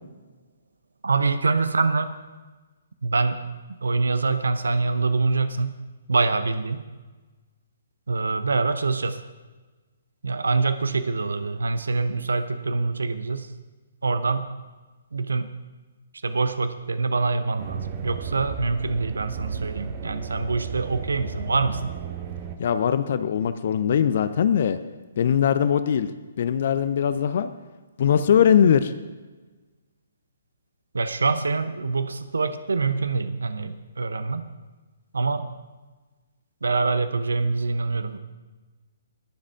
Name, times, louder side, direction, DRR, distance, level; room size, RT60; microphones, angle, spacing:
voice 1, 1.0-2.1 3.0-3.4 3.7-5.7 6.1-6.8 8.1-9.2 10.2-13.5 14.0-14.5 15.1-15.6 16.2-21.9 30.9-34.4 35.1-35.5 36.6-38.2, right 3 dB, 65° right, 12 dB, 0.8 m, -25 dB
sound 1, 17.6-22.6, right 6 dB, 30° right, 1.0 m, -34 dB
voice 2, 22.6-24.8 25.2-26.1 26.4-27.5 28.0-28.9, left 8 dB, 45° left, 12 dB, 0.6 m, -21 dB
22.0 x 7.4 x 3.6 m, 1.3 s
figure-of-eight pair, 130°, 0 cm